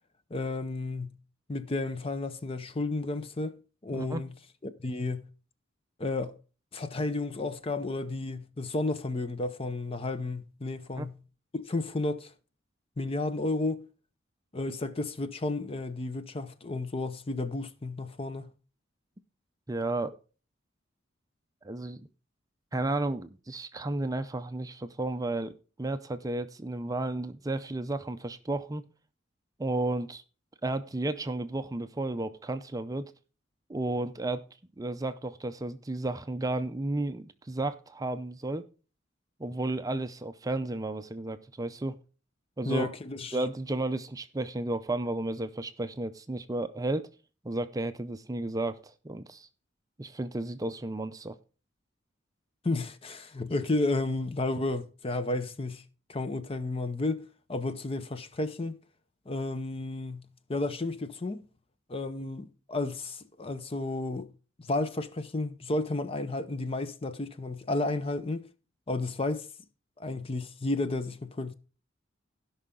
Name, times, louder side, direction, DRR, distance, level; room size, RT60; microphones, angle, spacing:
voice 1, 0.3-1.2 1.5-3.6 3.8-4.3 4.6-5.3 6.0-6.4 6.7-11.2 11.5-12.3 13.0-13.8 14.5-18.5 42.7-43.4 52.6-55.8 56.1-58.8 59.3-61.4 61.9-64.3 64.6-68.5 68.9-69.5 70.0-71.5, left 2 dB, 30° left, 0.6 m, -32 dB
voice 2, 3.9-4.2 10.9-11.1 19.7-20.2 21.6-22.0 22.7-28.8 29.6-30.2 30.6-33.1 33.7-34.4 34.8-38.7 39.4-42.0 42.6-42.9 43.3-47.1 47.4-49.5 50.0-51.3, right 2 dB, 20° right, 0.5 m, -33 dB
16.5 x 5.6 x 3.7 m
head